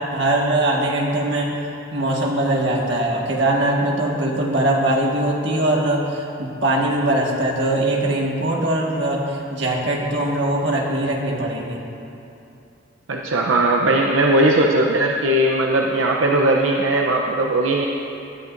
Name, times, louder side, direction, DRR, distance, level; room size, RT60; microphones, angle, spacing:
voice 1, 0.0-1.5 1.9-11.8, right 1 dB, 65° right, -2 dB, 1.7 m, -21 dB
voice 2, 13.1-17.9, right 1 dB, 85° right, 0 dB, 0.7 m, -18 dB
19.0 x 12.0 x 2.6 m, 2.8 s
head